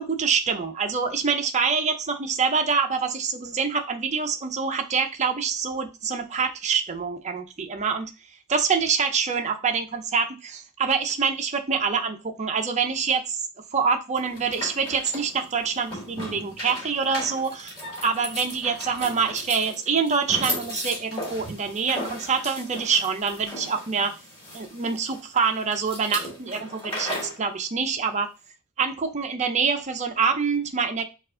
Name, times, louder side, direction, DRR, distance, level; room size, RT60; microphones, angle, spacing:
voice 1, 0.0-8.1 8.5-13.4 13.7-17.7 18.0-24.1 24.5-28.3 28.8-31.0, right 5 dB, 30° right, 5 dB, 0.6 m, -25 dB
sound 1, 14.2-27.4, left 1 dB, 25° left, 2.3 m, -36 dB
4.5 x 2.5 x 3.7 m, 0.29 s
head